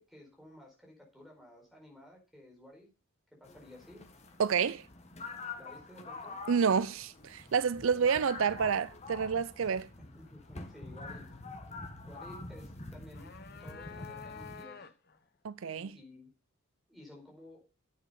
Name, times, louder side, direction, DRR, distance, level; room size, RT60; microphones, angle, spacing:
voice 1, 0.0-2.9 3.3-4.1 5.6-6.4 7.8-8.3 10.0-11.3 12.0-14.9 15.6-16.3 16.9-17.7, left 1 dB, ahead, 4.3 m, -54 dB
sound 1, 3.4-14.6, left 3 dB, 30° left, 1.6 m, -46 dB
voice 2, 4.4-4.8 6.5-9.9 15.4-15.9, right 6 dB, 70° right, 0.5 m, -29 dB
sound 2, 12.9-15.2, left 6 dB, 45° left, 1.2 m, -48 dB
11.0 x 8.4 x 5.4 m
head